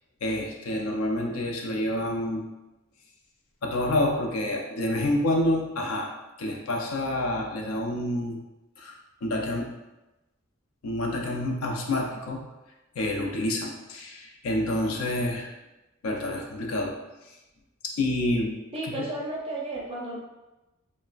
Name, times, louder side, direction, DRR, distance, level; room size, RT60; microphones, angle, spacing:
voice 1, 0.2-2.4 3.6-8.4 8.8-8.9 9.2-9.7 10.8-12.4 13.0-15.5 16.0-16.9 17.8-18.6 18.9-19.0, left 1 dB, 85° left, 1 dB, 0.5 m, -28 dB
voice 2, 18.7-20.2, right 2 dB, 25° right, -3 dB, 0.4 m, -33 dB
3.0 x 2.1 x 2.4 m, 1.0 s
head